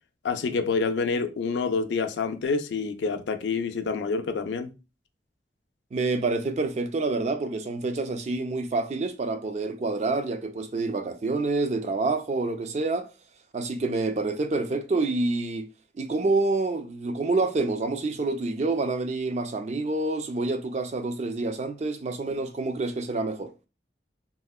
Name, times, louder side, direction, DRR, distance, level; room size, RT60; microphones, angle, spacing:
voice 1, 0.2-4.7, left 4 dB, 90° left, 0.4 m, -27 dB
voice 2, 5.9-13.1 13.5-15.7 16.0-23.5, right 3 dB, 40° right, 0.3 m, -27 dB
3.6 x 2.1 x 2.3 m
head